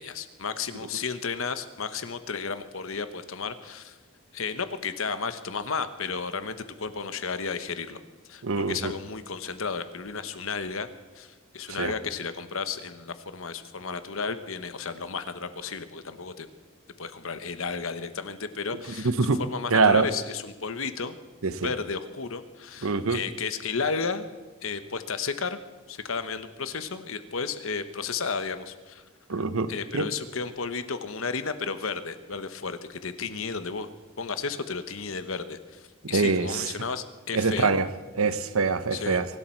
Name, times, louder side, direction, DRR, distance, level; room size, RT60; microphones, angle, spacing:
voice 1, 0.0-4.0 4.3-8.0 8.3-10.9 11.1-16.5 17.0-21.2 21.6-24.3 24.6-25.6 25.9-29.0 29.7-33.9 34.2-37.7 38.9-39.2, left 5 dB, 70° left, 11 dB, 1.1 m, -33 dB
voice 2, 8.4-8.9 11.7-11.9 19.0-19.4 19.7-20.1 21.4-21.7 22.8-23.2 29.3-30.1 36.1-36.7 37.3-37.9 38.1-39.3, right 4 dB, 80° right, 13 dB, 0.9 m, -24 dB
24.0 x 12.0 x 4.6 m, 1.3 s
head